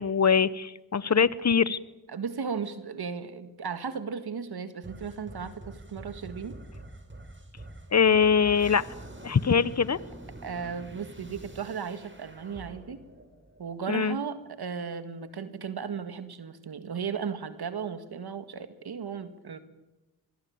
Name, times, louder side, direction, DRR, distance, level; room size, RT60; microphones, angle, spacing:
voice 1, 0.0-1.8 7.9-8.8 9.2-10.0 13.9-14.2, left 6 dB, 45° left, 18 dB, 1.1 m, -23 dB
voice 2, 2.1-6.6 10.4-13.0 13.6-19.6, right 6 dB, 80° right, 10 dB, 2.0 m, -35 dB
sound 1, 4.8-14.2, right 1 dB, 30° right, 5.4 m, -46 dB
24.0 x 22.0 x 8.8 m, 1.0 s
cardioid pair, 55°, 38 cm